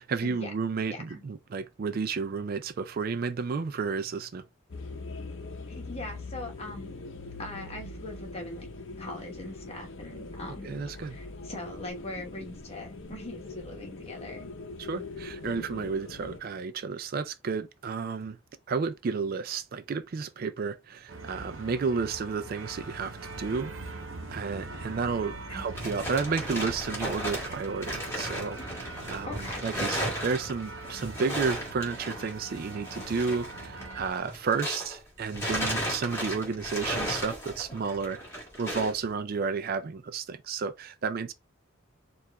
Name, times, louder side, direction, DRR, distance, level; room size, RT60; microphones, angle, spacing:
voice 1, 0.0-4.4 10.6-11.2 14.8-18.4 18.7-23.7 24.3-41.3, right 5 dB, 45° right, 0.3 m, -32 dB
voice 2, 0.9-1.2 5.7-7.0 7.4-8.7 9.0-10.8 11.0-14.5 25.5-25.7 29.2-30.1, left 2 dB, 30° left, 1.1 m, -41 dB
sound 1, 4.7-16.4, left 3 dB, 65° left, 0.7 m, -42 dB
sound 2, 21.1-34.1, right 2 dB, 70° right, 0.8 m, -42 dB
sound 3, 25.4-35.0 35.3-39.0, equal, 15° left, 1.5 m, -35 dB
4.6 x 2.4 x 3.3 m
head